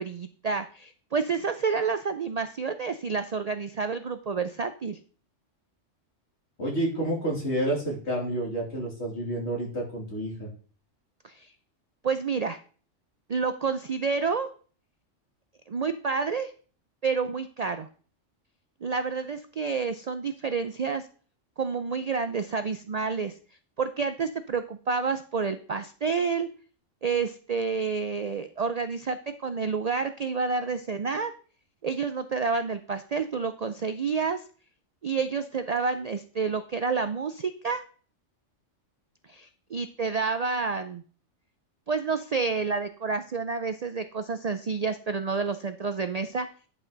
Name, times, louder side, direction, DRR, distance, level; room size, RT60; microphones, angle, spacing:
voice 1, 0.0-5.0 11.2-11.5 12.0-12.6 13.3-14.5 15.7-16.5 17.0-17.9 18.8-21.1 21.6-23.3 23.8-26.5 27.0-31.3 31.8-34.4 35.0-37.8 39.3-41.0 41.9-46.5, right 5 dB, 50° right, 10 dB, 0.4 m, -29 dB
voice 2, 6.6-10.5, right 1 dB, 60° left, -2 dB, 3.3 m, -29 dB
10.5 x 5.7 x 3.9 m, 0.41 s
omnidirectional pair, 1.3 m